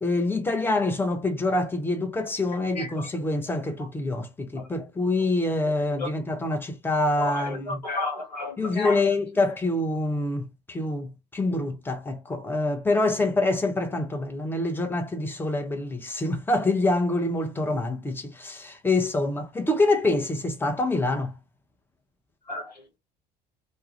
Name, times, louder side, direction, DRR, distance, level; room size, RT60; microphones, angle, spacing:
voice 1, 0.0-7.8 8.6-21.3, left 2 dB, 10° left, 0.7 m, -26 dB
voice 2, 2.8-3.1 4.6-4.7 6.0-6.1 7.2-9.0 22.5-22.7, left 3 dB, 90° left, 0.7 m, -32 dB
2.3 x 2.1 x 2.7 m
figure-of-eight pair, 60°, 21 cm